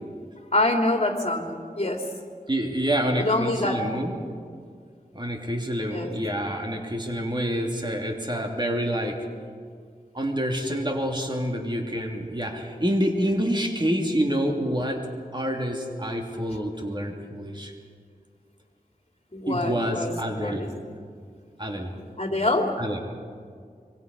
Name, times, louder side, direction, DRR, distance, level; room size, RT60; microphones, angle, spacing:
voice 1, 0.5-1.4 1.7-2.1 3.2-3.8 5.9-6.1 19.3-20.7 22.2-22.7, left 2 dB, 45° left, 2 dB, 3.3 m, -25 dB
voice 2, 2.5-4.1 5.1-9.2 10.1-15.1 15.3-17.7 19.5-20.7 21.6-21.9 22.8-23.0, equal, 30° right, 2 dB, 2.8 m, -27 dB
26.5 x 23.0 x 5.4 m, 2.1 s
wide cardioid pair, 45°, 15 cm